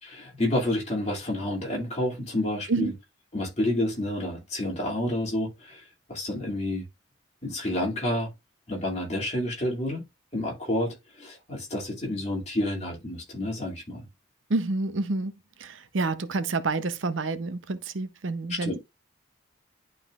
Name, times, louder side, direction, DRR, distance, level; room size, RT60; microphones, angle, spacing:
voice 1, 0.0-2.9 3.3-5.8 6.1-6.9 7.4-8.3 8.7-10.1 10.3-14.0 18.5-18.8, left 1 dB, 35° left, 2.3 m, -29 dB
voice 2, 14.5-15.3 15.6-18.8, right 3 dB, 85° right, 0.7 m, -28 dB
11.0 x 3.9 x 2.4 m
head